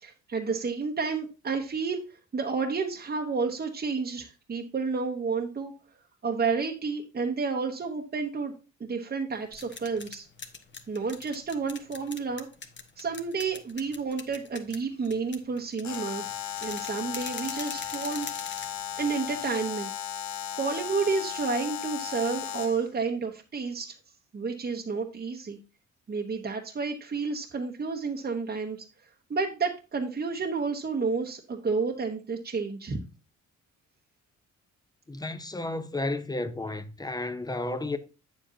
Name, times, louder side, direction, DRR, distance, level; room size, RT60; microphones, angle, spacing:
voice 1, 0.0-2.0 2.3-5.7 6.2-8.5 8.8-10.3 10.9-12.5 13.0-16.2 16.6-18.3 19.0-19.9 20.6-24.0 24.3-25.6 26.1-28.8 29.3-33.0, right 4 dB, 30° right, 1.1 m, -30 dB
sound 1, 9.3-19.7, left 5 dB, 40° left, 1.3 m, -44 dB
Alarm, 15.8-22.9, left 9 dB, 65° left, 0.9 m, -36 dB
voice 2, 35.1-38.0, left 2 dB, 15° left, 0.8 m, -32 dB
8.7 x 7.5 x 2.8 m
cardioid pair, 90°, 30 cm